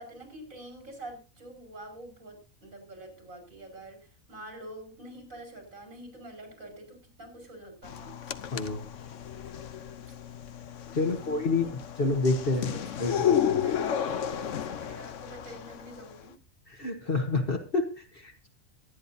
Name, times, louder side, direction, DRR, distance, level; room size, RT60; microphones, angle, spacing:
voice 1, 0.0-4.0 4.3-8.2 10.9-12.1 12.7-16.4, right 1 dB, 90° right, 6.3 m, -46 dB
sound 1, 7.8-16.2, left 9 dB, 70° left, 1.2 m, -32 dB
voice 2, 11.0-12.7 13.0-13.4 16.7-18.5, left 3 dB, 45° left, 1.7 m, -28 dB
23.0 x 10.0 x 2.8 m
omnidirectional pair, 1.4 m